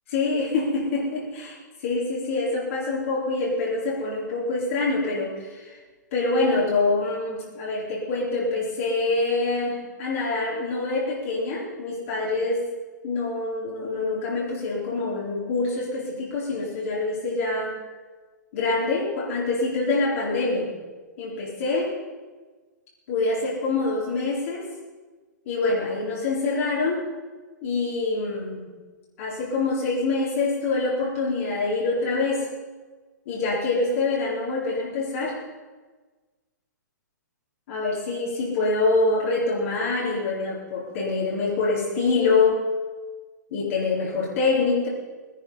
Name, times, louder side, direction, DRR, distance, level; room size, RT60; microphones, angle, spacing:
voice 1, 0.1-5.8 6.1-12.7 13.0-17.7 18.5-20.7 21.2-21.9 23.1-24.7 25.5-27.0 27.6-28.7 29.2-32.5 33.3-35.4 37.7-42.6 43.5-44.9, left 3 dB, 45° left, -5 dB, 4.2 m, -25 dB
19.0 x 10.5 x 5.6 m, 1.4 s
figure-of-eight pair, 115°, 10 cm